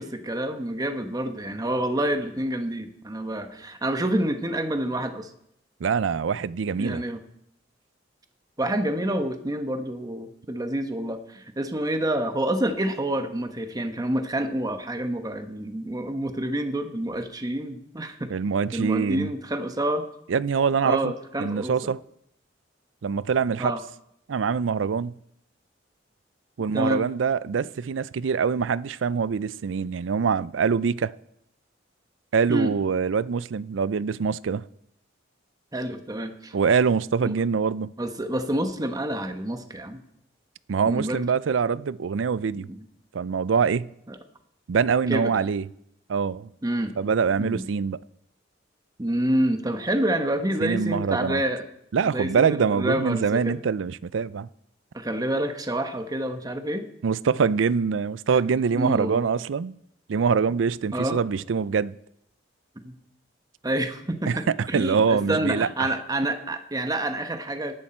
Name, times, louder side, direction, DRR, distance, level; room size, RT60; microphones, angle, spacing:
voice 1, 0.0-5.3 6.7-7.2 8.6-18.3 18.7-20.1 20.8-21.9 23.6-23.8 26.7-27.0 32.5-32.7 35.7-36.5 37.2-37.3 38.0-40.0 40.8-41.2 42.6-42.8 44.1-44.2 45.1-45.3 46.6-46.9 47.4-47.6 49.0-51.6 52.1-53.6 54.9-56.9 58.7-59.2 60.9-61.2 62.8-63.0 63.6-67.8, right 1 dB, 20° right, 1.1 m, -28 dB
voice 2, 5.8-7.0 18.3-19.3 20.3-21.1 21.4-22.0 23.0-23.7 24.3-25.1 26.6-31.1 32.3-34.6 36.5-37.9 40.7-42.7 43.1-43.9 44.7-45.6 46.1-46.5 47.0-48.0 50.6-51.4 51.9-54.5 57.0-59.8 60.1-61.9 64.3-65.9, right 6 dB, 85° right, 0.4 m, -24 dB
18.0 x 11.0 x 4.4 m
head